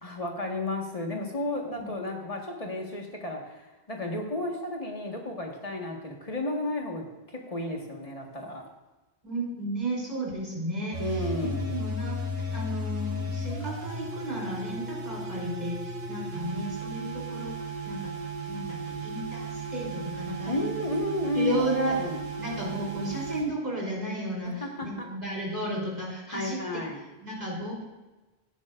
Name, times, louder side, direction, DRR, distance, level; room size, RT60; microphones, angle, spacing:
voice 1, 0.0-8.6 11.0-11.8 20.4-22.2 24.4-25.1 26.3-27.0, left 1 dB, 35° left, 0 dB, 1.7 m, -32 dB
voice 2, 9.2-11.3 11.7-17.6 17.8-18.1 18.5-20.7 21.3-22.0 22.4-26.8 27.2-27.8, right 1 dB, 45° right, -4 dB, 3.6 m, -33 dB
sound 1, 10.9-23.4, right 1 dB, 85° right, 3.8 m, -35 dB
16.5 x 9.3 x 2.5 m, 1.1 s
omnidirectional pair, 1.0 m